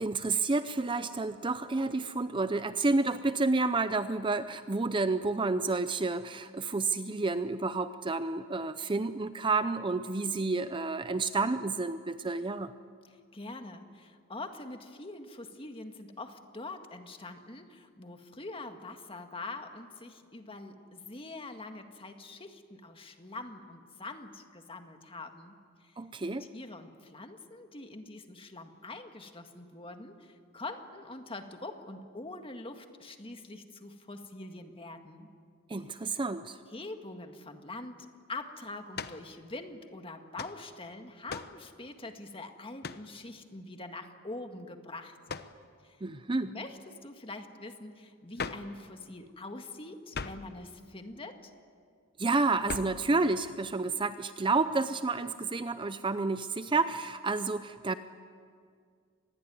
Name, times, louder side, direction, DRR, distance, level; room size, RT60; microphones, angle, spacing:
voice 1, 0.0-12.7 26.0-26.5 35.7-36.6 46.0-46.5 52.2-58.0, right 3 dB, 20° right, 11 dB, 0.6 m, -30 dB
voice 2, 13.0-26.0 26.4-35.3 36.7-45.2 45.8-46.0 46.4-51.5, left 2 dB, 25° left, 6 dB, 1.8 m, -44 dB
sound 1, 38.9-39.3 40.4-40.6 41.3-41.6 42.8-43.1 45.3-45.6 48.4-48.7 50.1-50.5 52.7-53.0, left 5 dB, 45° left, 0.9 m, -38 dB
26.5 x 20.5 x 9.4 m, 2.1 s
head